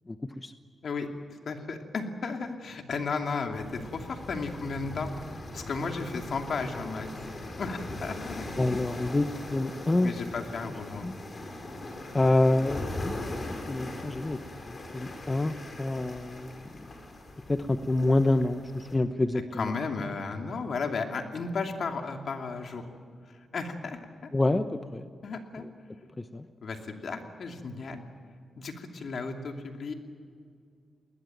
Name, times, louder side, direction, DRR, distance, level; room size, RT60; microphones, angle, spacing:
voice 1, 0.1-0.5 8.6-10.4 11.0-11.1 12.1-13.2 13.7-14.4 14.7-16.7 17.5-19.7 24.3-25.1 26.2-26.4, left 2 dB, 25° left, 9 dB, 1.0 m, -27 dB
voice 2, 1.4-5.1 5.5-7.1 7.6-8.5 10.0-11.3 19.5-22.8 23.5-24.0 25.2-25.6 26.6-28.0 28.6-29.9, left 4 dB, 65° left, 4 dB, 2.7 m, -34 dB
sound 1, 3.5-19.0, left 2 dB, 40° left, 4.8 m, -40 dB
20.5 x 20.5 x 9.3 m, 2.2 s
cardioid pair, 75°, 0 cm